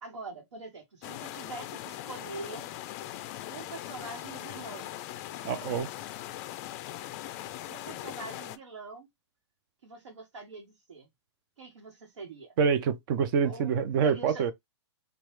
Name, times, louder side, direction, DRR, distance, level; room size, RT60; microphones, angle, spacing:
voice 1, 0.0-2.7 3.5-5.0 7.6-9.1 9.8-11.1 11.6-12.5 13.4-13.8 14.0-14.4, right 3 dB, 75° right, 1.2 m, -44 dB
sound 1, 1.0-8.6, left 14 dB, 35° left, 0.3 m, -40 dB
voice 2, 5.4-5.9 12.6-14.5, right 6 dB, 45° right, 0.6 m, -26 dB
3.0 x 2.3 x 3.0 m
hypercardioid pair, 130°, 15 cm